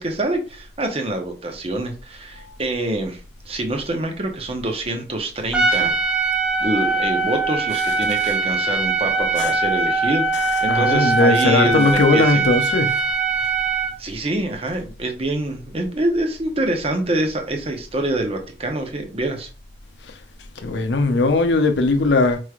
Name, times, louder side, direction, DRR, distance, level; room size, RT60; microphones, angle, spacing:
voice 1, 0.0-3.2 3.5-5.9 6.6-10.2 10.6-12.5 14.0-19.5, right 1 dB, 35° right, 0.7 m, -25 dB
Trumpet, 5.5-14.0, right 3 dB, 5° right, 0.4 m, -21 dB
voice 2, 10.7-13.0 20.6-22.4, left 3 dB, 80° left, 0.6 m, -18 dB
4.6 x 3.1 x 2.4 m
head